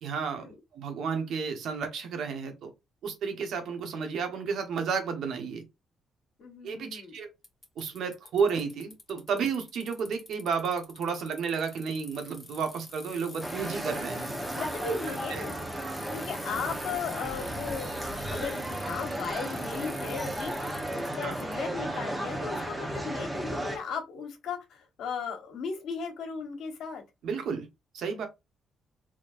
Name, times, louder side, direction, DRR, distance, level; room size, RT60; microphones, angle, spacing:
voice 1, 0.0-2.7 3.0-5.7 6.6-7.3 7.8-14.3 15.3-15.5 21.2-21.3 27.2-27.7 27.9-28.3, right 6 dB, 75° right, 1.2 m, -32 dB
voice 2, 6.4-7.2 14.5-15.5 16.1-18.0 18.3-27.0, left 5 dB, 75° left, 1.2 m, -36 dB
Bicycle, 7.4-21.6, left 2 dB, 25° left, 1.3 m, -47 dB
sound 1, 13.4-23.8, right 1 dB, 15° right, 1.1 m, -34 dB
3.9 x 3.1 x 2.6 m
cardioid pair, 90°, 0 cm